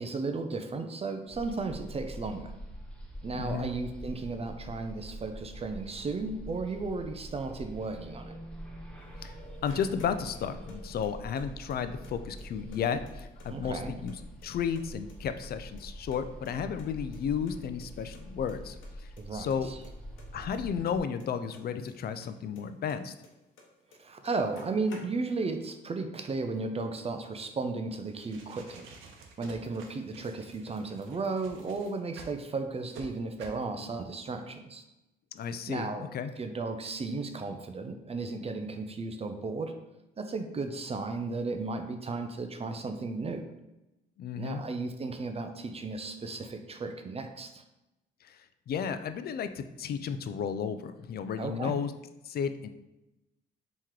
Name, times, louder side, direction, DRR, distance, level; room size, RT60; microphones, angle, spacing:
voice 1, 0.0-2.5 3.2-8.3 13.5-13.9 19.2-19.8 24.0-28.9 29.4-34.8 35.7-36.1 36.4-39.7 40.2-43.4 44.3-47.6 51.4-51.7, right 3 dB, 30° right, 6 dB, 0.4 m, -35 dB
sound 1, 1.3-21.0, equal, 5° left, 0.9 m, -45 dB
voice 2, 3.3-3.7 9.2-9.4 9.6-19.7 20.3-23.1 35.3-36.3 44.2-44.6 48.2-51.9 52.2-52.7, left 7 dB, 50° left, 11 dB, 0.4 m, -33 dB
sound 2, 9.0-10.8 11.0-12.1 12.4-12.5 12.7-14.1 14.4-15.2 15.4-16.9 17.1-17.2 17.5-17.6 17.8-17.9 18.1-18.5 18.8-19.2 19.5-21.9 22.2-23.6 23.9-24.0 24.2-25.5, left 3 dB, 80° left, 1.0 m, -54 dB
sound 3, 28.0-32.4 32.9-33.1 33.4-33.6, right 4 dB, 90° right, 0.7 m, -50 dB
3.7 x 3.0 x 4.5 m, 0.96 s
cardioid pair, 90°, 20 cm